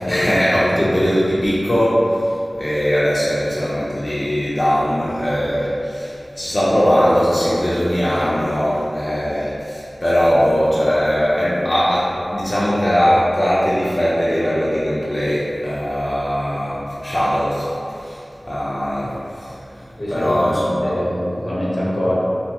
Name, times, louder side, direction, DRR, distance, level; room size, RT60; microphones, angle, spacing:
voice 1, 0.0-19.6 20.1-20.9, equal, 40° left, -9 dB, 0.5 m, -20 dB
voice 2, 19.8-22.2, equal, 70° left, -8 dB, 0.8 m, -24 dB
3.4 x 2.2 x 2.8 m, 2.6 s
wide cardioid pair, 50°, 0 cm